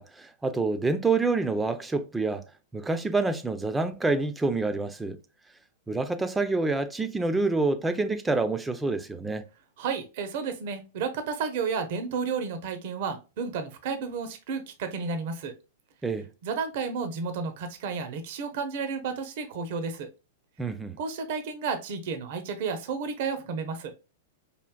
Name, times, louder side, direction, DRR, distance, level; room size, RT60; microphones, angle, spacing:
voice 1, 0.0-2.4 2.7-5.2 5.9-9.4 16.0-16.3 20.6-21.0, right 3 dB, 10° right, 0.5 m, -27 dB
voice 2, 9.8-15.5 16.4-20.1 21.0-23.9, right 5 dB, 55° right, 0.8 m, -32 dB
5.0 x 2.7 x 2.2 m
hypercardioid pair, 105°, 0 cm